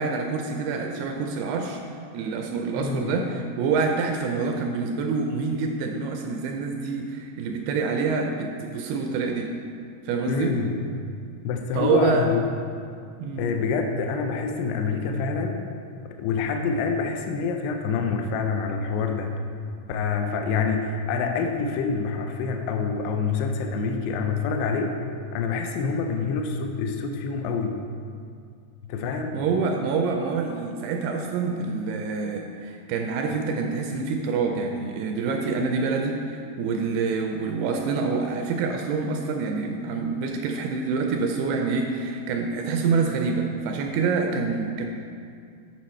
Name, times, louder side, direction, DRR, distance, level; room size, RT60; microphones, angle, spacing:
voice 1, 0.0-1.8 2.1-9.5 10.1-10.6 11.8-12.3 13.2-13.5 29.3-44.9, right 4 dB, 80° right, 3 dB, 2.4 m, -26 dB
voice 2, 2.8-3.2 10.3-10.8 11.4-12.4 13.4-15.7 16.1-19.3 19.9-25.0 25.3-27.8 28.9-29.4, left 5 dB, 85° left, 5 dB, 2.6 m, -26 dB
9.0 x 6.3 x 4.3 m, 2.3 s
omnidirectional pair, 4.8 m